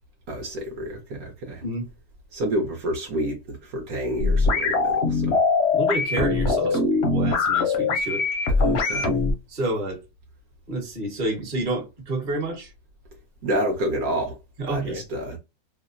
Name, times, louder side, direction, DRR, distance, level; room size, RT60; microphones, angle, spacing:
voice 1, 0.3-1.6 2.3-5.4 6.7-6.9 8.6-9.1 13.4-14.4 14.7-15.4, right 1 dB, 70° right, 1.1 m, -29 dB
sound 1, 4.2-9.3, left 3 dB, 60° left, 0.7 m, -22 dB
voice 2, 5.7-8.2 9.5-10.0 10.7-12.7 14.6-15.0, right 1 dB, 35° right, 1.0 m, -29 dB
2.9 x 2.0 x 2.4 m
omnidirectional pair, 1.7 m